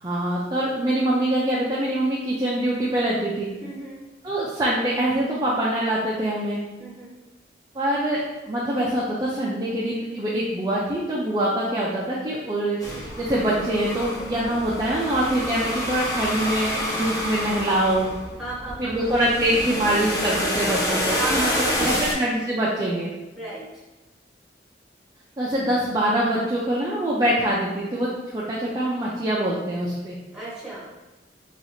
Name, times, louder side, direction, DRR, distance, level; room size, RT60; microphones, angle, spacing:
voice 1, 0.0-3.5 4.2-6.6 7.7-18.1 18.8-21.5 21.8-23.1 25.4-30.2, right 1 dB, 20° right, -7 dB, 0.4 m, -24 dB
voice 2, 3.6-4.0 6.8-7.1 18.4-19.1 21.0-22.1 23.3-23.6 30.3-30.9, right 2 dB, 5° right, -8 dB, 1.2 m, -34 dB
sound 1, 12.8-22.1, equal, 20° left, 1.0 m, -28 dB
2.8 x 2.4 x 4.1 m, 1.1 s
head